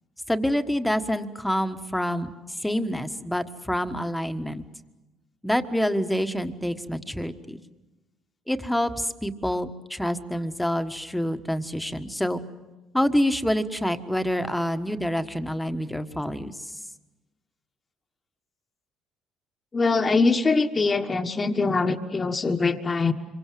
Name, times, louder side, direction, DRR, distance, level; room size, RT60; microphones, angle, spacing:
voice 1, 0.3-2.3 2.6-4.6 5.4-7.6 8.5-12.4 12.9-16.5, equal, 5° left, 8 dB, 1.5 m, -27 dB
voice 2, 19.7-23.1, left 3 dB, 30° left, 5 dB, 1.5 m, -23 dB
26.0 x 23.5 x 7.7 m, 1.1 s
supercardioid pair, 80°, 0 cm